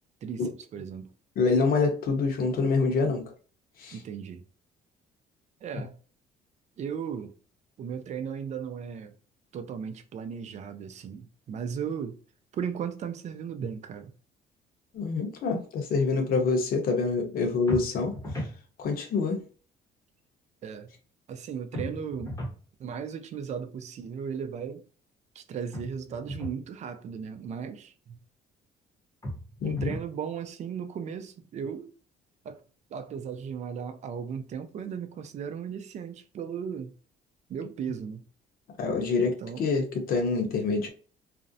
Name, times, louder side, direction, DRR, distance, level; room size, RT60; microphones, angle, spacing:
voice 1, 0.2-1.1 3.9-4.4 5.6-5.9 6.8-7.3 7.8-9.1 9.5-12.2 12.5-14.1 20.6-20.9 21.3-22.4 22.8-24.8 25.4-28.2 29.6-31.9 32.4-32.6 32.9-36.9 37.5-38.2 39.2-39.7, right 7 dB, 45° right, 0.4 m, -36 dB
voice 2, 1.4-3.3 3.8-4.0 14.9-18.1 18.8-19.4 29.6-29.9 38.8-40.9, left 4 dB, 60° left, 0.8 m, -26 dB
sound 1, 17.7-18.6 21.7-22.6 25.7-26.6 29.2-30.2, equal, 20° left, 0.8 m, -36 dB
2.5 x 2.0 x 2.6 m
cardioid pair, 110°, 17 cm